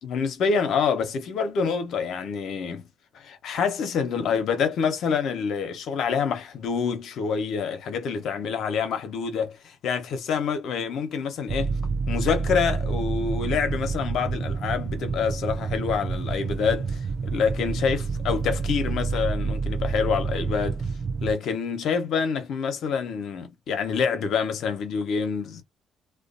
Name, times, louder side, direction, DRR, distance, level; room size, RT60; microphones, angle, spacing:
voice 1, 0.0-2.9 3.1-11.7 12.1-20.8 21.2-25.6, left 6 dB, 70° left, 0.8 m, -27 dB
sound 1, 11.5-21.3, right 5 dB, 45° right, 0.4 m, -28 dB
2.5 x 2.3 x 2.5 m
cardioid pair, 90°, 0 cm